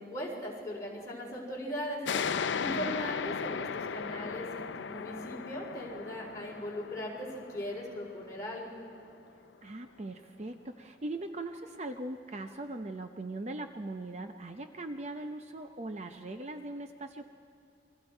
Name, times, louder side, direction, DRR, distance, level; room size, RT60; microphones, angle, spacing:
voice 1, 0.0-2.0 2.6-8.7, equal, 20° left, -4 dB, 4.2 m, -39 dB
sound 1, 2.0-9.2, left 6 dB, 90° left, 0.5 m, -37 dB
voice 2, 2.6-3.0 9.6-17.3, right 2 dB, 40° right, 6 dB, 0.7 m, -40 dB
28.0 x 22.5 x 4.5 m, 2.7 s
head